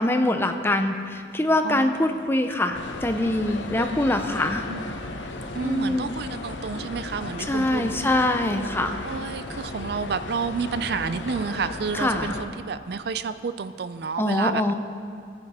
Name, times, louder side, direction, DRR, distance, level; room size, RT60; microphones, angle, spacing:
voice 1, 0.0-4.6 5.6-6.1 7.5-9.0 11.9-12.4 14.2-14.7, left 1 dB, 10° left, 6 dB, 0.6 m, -24 dB
voice 2, 1.6-2.2 4.7-5.2 5.6-8.0 9.0-14.7, right 5 dB, 60° right, 12 dB, 0.4 m, -30 dB
sound 1, 2.7-12.5, left 2 dB, 85° left, 1.0 m, -35 dB
18.0 x 9.6 x 4.2 m, 2.3 s
head